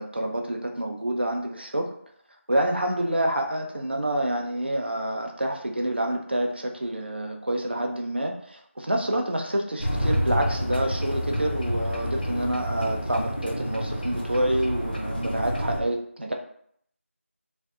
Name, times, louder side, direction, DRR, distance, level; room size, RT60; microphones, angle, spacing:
voice 1, 0.0-1.9 2.5-16.3, right 1 dB, 50° right, 2 dB, 0.4 m, -27 dB
sound 1, 9.8-15.8, equal, 40° left, 0.5 m, -28 dB
2.6 x 2.1 x 2.4 m, 0.65 s
figure-of-eight pair, 180°, 8 cm